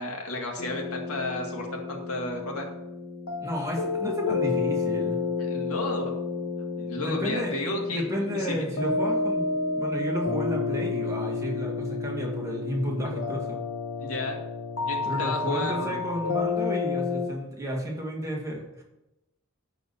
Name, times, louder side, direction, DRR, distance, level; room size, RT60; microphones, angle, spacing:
voice 1, 0.0-2.7 5.4-6.1 6.8-8.6 14.0-14.4 14.8-16.0, left 2 dB, 90° left, 2 dB, 1.9 m, -32 dB
sound 1, 0.6-17.3, left 4 dB, 70° left, 1.2 m, -30 dB
voice 2, 3.4-5.2 7.0-9.5 9.8-13.6 15.1-18.8, equal, 15° right, -2 dB, 1.9 m, -32 dB
11.0 x 4.1 x 7.1 m, 0.93 s
head